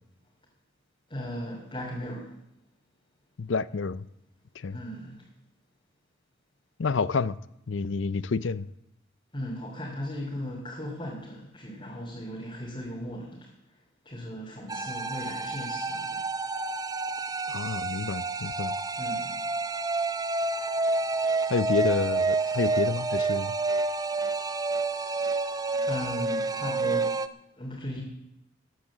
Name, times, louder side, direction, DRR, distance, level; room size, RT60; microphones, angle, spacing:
voice 1, 1.1-2.3 4.7-5.2 9.3-13.5 14.0-16.2 19.0-19.4 25.9-27.1 27.6-28.0, equal, 30° left, 2.8 m, -37 dB
voice 2, 3.4-4.1 4.6-4.8 6.8-7.4 7.7-8.7 17.5-18.7 21.5-23.5, left 4 dB, 75° left, 0.6 m, -29 dB
sound 1, 14.7-27.3, right 3 dB, 20° right, 0.5 m, -29 dB
14.0 x 10.0 x 7.3 m
head